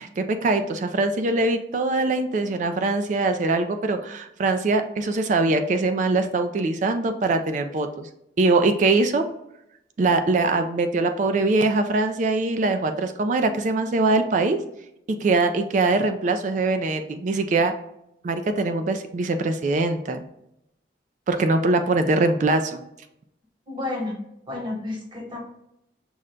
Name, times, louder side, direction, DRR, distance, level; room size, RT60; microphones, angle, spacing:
voice 1, 0.0-8.1 8.4-9.2 10.0-14.6 15.1-17.7 18.2-20.2 21.3-22.8, right 3 dB, 45° right, 7 dB, 0.3 m, -22 dB
voice 2, 23.7-24.2 24.5-25.4, left 2 dB, 25° right, -1 dB, 1.1 m, -31 dB
6.2 x 2.2 x 3.7 m, 0.80 s
head